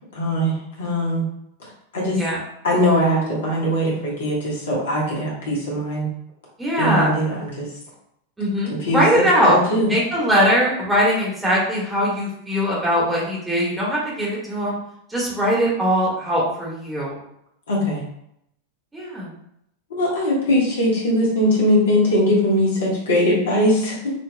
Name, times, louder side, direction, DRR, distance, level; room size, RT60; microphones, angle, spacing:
voice 1, 0.1-1.2 1.9-2.2 2.6-6.1 6.8-7.7 8.9-9.9 17.7-18.0 19.9-23.9, equal, 65° left, -4 dB, 1.3 m, -20 dB
voice 2, 2.1-2.4 6.6-7.1 8.4-9.6 9.9-14.8 15.1-17.2 18.9-19.3, equal, 10° right, -5 dB, 1.5 m, -21 dB
5.9 x 2.8 x 2.2 m, 0.75 s
figure-of-eight pair, 90°, 0 cm